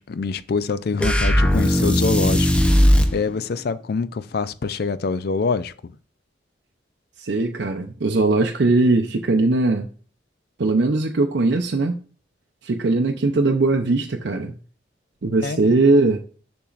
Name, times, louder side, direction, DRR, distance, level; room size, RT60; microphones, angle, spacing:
voice 1, 0.0-2.5 3.1-5.9 15.4-15.7, left 4 dB, 55° left, 0.4 m, -25 dB
sound 1, 1.0-3.2, equal, 5° left, 0.6 m, -17 dB
voice 2, 7.2-9.9 10.6-12.0 12.6-14.5 15.2-16.2, right 3 dB, 65° right, 0.5 m, -20 dB
6.9 x 6.1 x 2.4 m
head